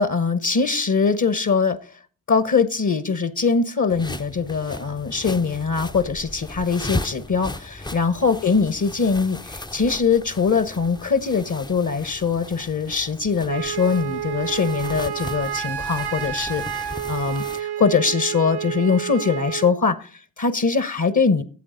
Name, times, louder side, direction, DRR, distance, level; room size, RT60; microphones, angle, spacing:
voice 1, 0.0-1.8 2.3-21.4, left 5 dB, 40° left, 14 dB, 1.1 m, -22 dB
sound 1, 3.9-17.6, left 2 dB, 10° left, 0.5 m, -36 dB
Wind instrument woodwind instrument, 13.5-19.7, right 9 dB, 55° right, 0.6 m, -30 dB
13.5 x 7.9 x 3.9 m, 0.40 s
supercardioid pair, 40°, 47 cm